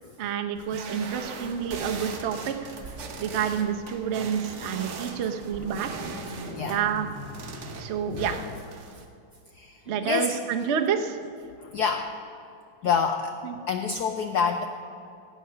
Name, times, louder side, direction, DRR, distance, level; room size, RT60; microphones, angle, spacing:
voice 1, 0.2-2.7 3.2-5.9 6.6-7.1 7.8-8.4 9.9-11.2 13.4-13.5, right 8 dB, 75° right, 4 dB, 0.6 m, -28 dB
sound 1, 0.5-9.0, right 5 dB, 50° right, 0.9 m, -40 dB
Car, 1.0-7.8, left 1 dB, 35° left, 1.1 m, -44 dB
voice 2, 8.1-8.6 9.5-10.4 11.6-12.2 12.8-13.4 13.7-14.7, left 6 dB, 85° left, 6 dB, 0.8 m, -27 dB
16.5 x 8.8 x 5.7 m, 2.5 s
omnidirectional pair, 2.4 m